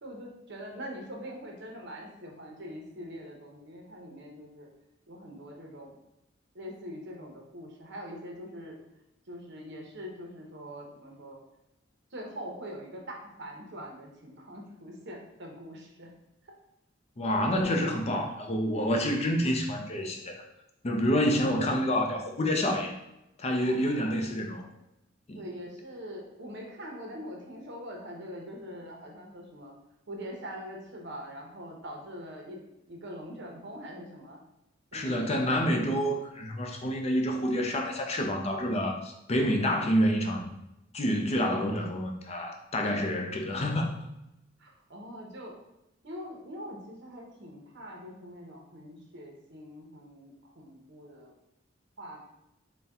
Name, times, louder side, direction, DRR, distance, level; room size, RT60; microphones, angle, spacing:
voice 1, 0.0-4.7 5.1-5.9 6.5-8.7 9.3-11.4 12.1-16.1 23.6-24.2 25.4-29.7 30.1-32.6 32.9-34.4 34.9-35.3 44.6-45.5 46.0-51.3 52.0-52.2, equal, 65° right, 0 dB, 0.9 m, -43 dB
voice 2, 17.2-20.3 20.8-22.9 23.4-24.6 25.3-25.4 34.9-40.5 40.9-43.9, equal, 35° left, 2 dB, 0.5 m, -28 dB
4.1 x 2.2 x 3.6 m, 0.89 s
head